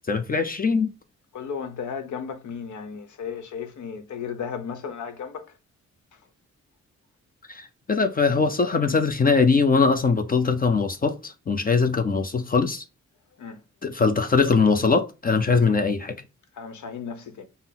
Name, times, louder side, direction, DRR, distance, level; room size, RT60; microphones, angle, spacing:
voice 1, 0.1-0.9 7.5-12.8 13.8-16.2, left 4 dB, 30° left, 0.4 m, -21 dB
voice 2, 1.3-5.5 6.1-6.2 13.4-13.6 16.5-17.4, left 6 dB, 85° left, 0.9 m, -34 dB
5.8 x 2.0 x 3.7 m
wide cardioid pair, 135°, 29 cm